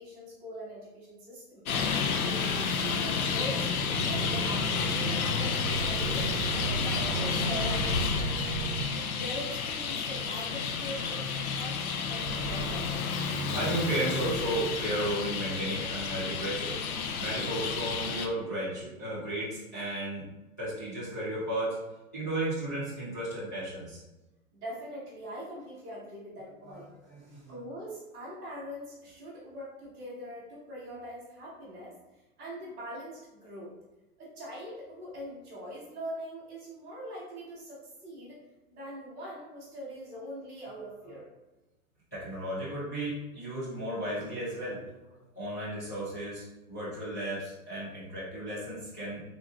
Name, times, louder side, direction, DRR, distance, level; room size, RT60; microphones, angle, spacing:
voice 1, 0.0-1.6 2.2-8.3 8.9-13.0 24.5-26.9 27.5-31.9 32.4-33.7 34.2-38.4 38.7-41.3, equal, 10° right, -14 dB, 1.1 m, -42 dB
Traffic noise roadway noise, 1.7-18.3, left 5 dB, 75° left, 0.6 m, -31 dB
sound 1, 3.8-8.8, right 4 dB, 80° right, 0.8 m, -35 dB
voice 2, 13.2-16.8 17.2-20.3 20.6-21.8 22.1-24.0 26.6-26.8 27.0-27.5 41.0-41.1 42.1-45.0 45.4-49.2, right 1 dB, 10° left, -13 dB, 0.5 m, -34 dB
3.7 x 3.6 x 2.3 m, 1.1 s
hypercardioid pair, 180°, 44 cm